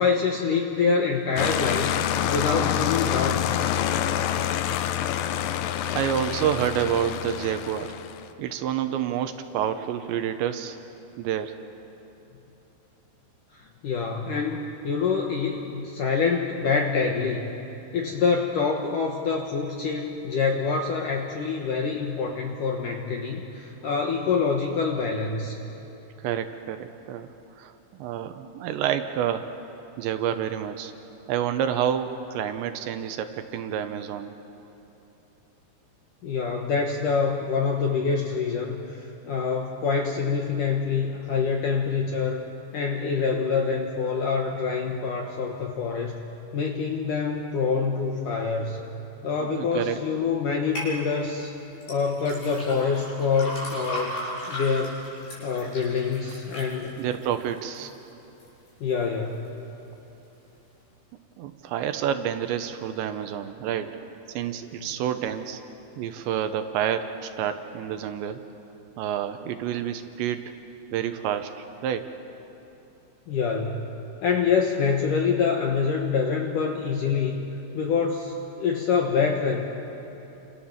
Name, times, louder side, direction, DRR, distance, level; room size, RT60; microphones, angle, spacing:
voice 1, 0.0-1.9 2.3-3.6 13.5-17.5 17.9-25.6 36.2-42.4 42.7-46.2 46.5-48.8 49.2-51.5 51.9-54.2 54.5-55.0 55.4-57.0 58.8-59.5 73.3-73.9 74.2-77.4 77.7-79.6, left 5 dB, 65° left, 2 dB, 2.1 m, -26 dB
sound 1, 1.4-8.2, left 11 dB, 85° left, 3.4 m, -27 dB
voice 2, 5.9-8.0 8.4-10.8 11.2-11.6 26.2-27.3 27.6-27.7 28.0-29.5 30.0-30.9 31.3-34.3 49.4-50.0 57.0-57.9 61.4-65.6 66.0-68.4 69.0-70.5 70.9-72.2, right 9 dB, 75° right, 8 dB, 3.0 m, -28 dB
sound 2, 50.8-50.9 51.8-57.9 58.4-58.9 59.4-59.5, left 1 dB, 50° left, 9.4 m, -36 dB
29.5 x 27.5 x 7.4 m, 3.0 s
omnidirectional pair, 5.5 m